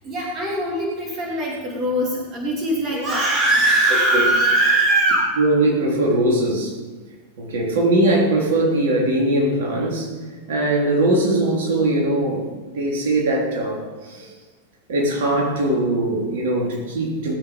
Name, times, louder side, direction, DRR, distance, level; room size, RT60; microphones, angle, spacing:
voice 1, 0.0-5.4, right 1 dB, 30° right, -2 dB, 2.9 m, -20 dB
voice 2, 5.4-6.8 7.4-10.1 10.5-14.3 14.9-17.3, right 1 dB, 55° right, -2 dB, 3.5 m, -20 dB
19.0 x 8.2 x 5.3 m, 1.4 s
figure-of-eight pair, 90°, 0 cm